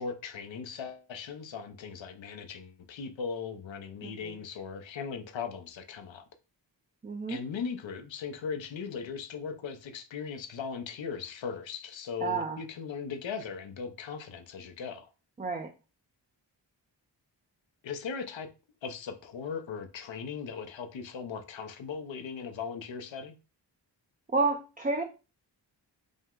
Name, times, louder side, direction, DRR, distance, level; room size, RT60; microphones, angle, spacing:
voice 1, 0.0-6.2 7.3-15.1 17.8-18.5 18.8-23.4, left 6 dB, 85° left, 0.7 m, -38 dB
voice 2, 4.0-4.4 7.0-7.4 12.2-12.6 15.4-15.7 24.3-25.0, right 3 dB, 20° right, 0.5 m, -30 dB
5.2 x 2.1 x 3.6 m
wide cardioid pair, 90°, 44 cm